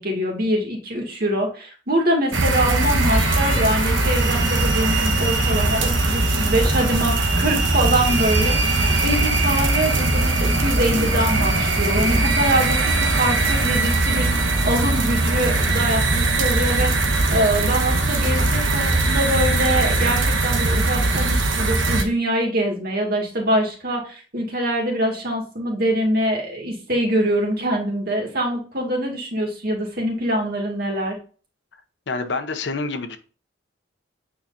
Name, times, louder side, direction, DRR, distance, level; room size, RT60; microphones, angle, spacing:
voice 1, 0.0-14.3 14.6-16.9 17.3-31.2, right 1 dB, 55° right, 1 dB, 2.2 m, -24 dB
sound 1, 2.3-22.0, right 2 dB, 90° right, 1.2 m, -20 dB
sound 2, 2.9-20.2, left 1 dB, 35° left, 1.3 m, -33 dB
voice 2, 32.1-33.2, left 3 dB, 65° left, 8 dB, 0.8 m, -27 dB
8.7 x 4.8 x 2.6 m, 0.38 s
head